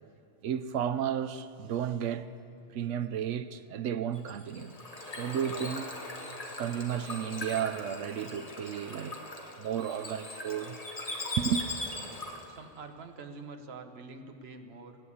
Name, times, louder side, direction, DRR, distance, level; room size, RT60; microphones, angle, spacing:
voice 1, 0.4-2.3 2.7-4.7 5.2-5.9 6.2-9.2 9.6-10.8 11.4-11.6, right 9 dB, 85° right, 1.0 m, -33 dB
Bird / Water, 4.1-12.6, left 2 dB, 30° left, 1.5 m, -40 dB
voice 2, 12.5-15.0, right 4 dB, 60° right, 1.3 m, -46 dB
17.0 x 9.2 x 8.5 m
omnidirectional pair, 1.2 m